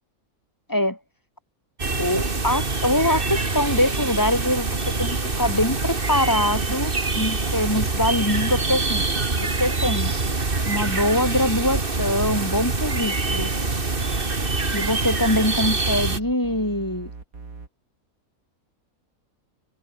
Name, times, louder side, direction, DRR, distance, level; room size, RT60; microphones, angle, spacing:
sound 1, 1.8-16.2, right 3 dB, 40° right, 2.6 m, -25 dB
voice 1, 2.0-9.0 9.6-10.1 10.6-13.5 14.7-17.1, left 1 dB, 15° left, 3.5 m, -23 dB
sound 2, 2.9-4.7 5.6-8.3 8.6-9.3 9.8-13.0 13.3-14.4 15.2-17.7, right 4 dB, 75° right, 3.5 m, -40 dB
omnidirectional pair, 1.5 m